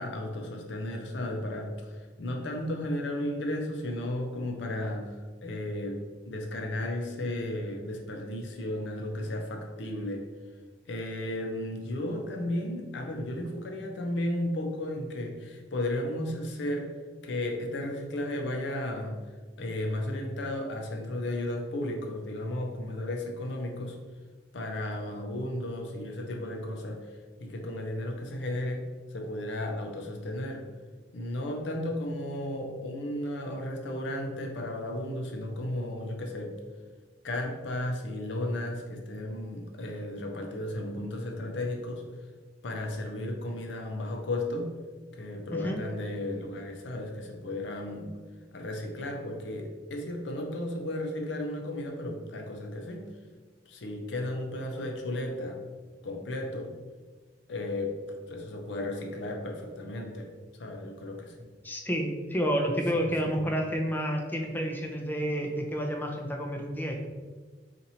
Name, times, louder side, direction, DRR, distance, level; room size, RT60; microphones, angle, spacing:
voice 1, 0.0-1.7 2.2-10.2 10.9-16.9 17.2-19.2 19.6-24.0 24.5-27.1 27.4-28.9 29.1-30.7 31.1-36.6 37.2-42.0 42.6-44.7 45.1-48.1 48.5-53.1 53.7-55.6 56.0-56.7 57.5-58.0 58.3-60.3 60.6-61.5 62.9-63.4, left 1 dB, 70° left, 2 dB, 0.6 m, -34 dB
voice 2, 61.6-66.9, equal, 10° left, 1 dB, 0.4 m, -30 dB
2.8 x 2.5 x 4.2 m, 1.4 s
head